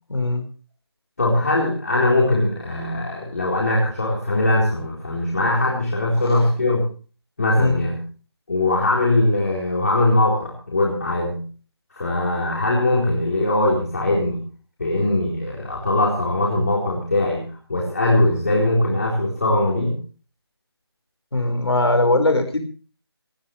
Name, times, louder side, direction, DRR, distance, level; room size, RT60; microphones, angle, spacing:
voice 1, 0.1-0.4 6.2-6.4 7.6-7.8 21.3-22.6, left 2 dB, 70° left, 7 dB, 4.8 m, -20 dB
voice 2, 1.2-6.9 7.4-8.0 8.5-11.4 12.0-14.4 14.8-20.0, left 2 dB, 35° left, -3 dB, 3.9 m, -21 dB
19.0 x 18.5 x 3.2 m, 0.40 s
figure-of-eight pair, 180°, 14 cm